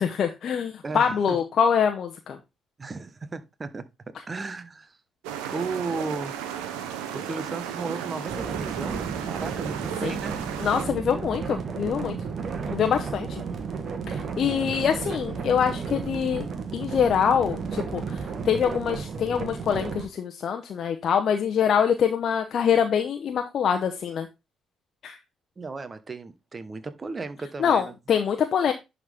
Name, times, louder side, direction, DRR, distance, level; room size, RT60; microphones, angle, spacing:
voice 1, 0.0-2.4 10.0-10.1 10.6-12.2 12.6-13.4 14.1-16.5 16.7-24.3 25.0-25.2 27.6-28.7, left 7 dB, 60° left, 0.9 m, -24 dB
voice 2, 0.8-1.4 2.8-3.8 4.3-5.0 5.5-6.4 7.1-10.4 13.2-13.3 25.6-27.9, right 4 dB, 35° right, 1.2 m, -35 dB
sound 1, 5.2-10.9, right 9 dB, 80° right, 1.0 m, -34 dB
sound 2, 8.3-20.1, right 5 dB, 55° right, 1.5 m, -33 dB
11.0 x 4.1 x 3.6 m
hypercardioid pair, 50°, 0 cm